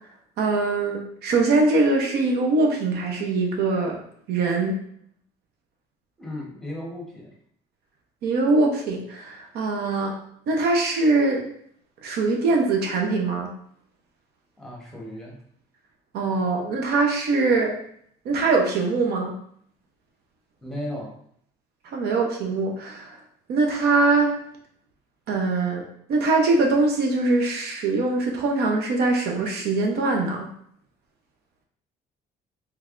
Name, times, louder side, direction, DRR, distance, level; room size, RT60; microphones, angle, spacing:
voice 1, 0.4-4.0 4.3-4.8 8.2-10.2 10.5-11.4 12.0-13.5 16.1-17.7 18.2-19.3 21.8-23.2 23.5-24.4 25.3-30.5, right 3 dB, 70° right, 1 dB, 0.7 m, -22 dB
voice 2, 6.2-7.3 14.6-15.3 20.6-21.1, left 1 dB, 5° left, -3 dB, 1.0 m, -35 dB
3.4 x 3.3 x 2.4 m, 0.66 s
cardioid pair, 110°, 17 cm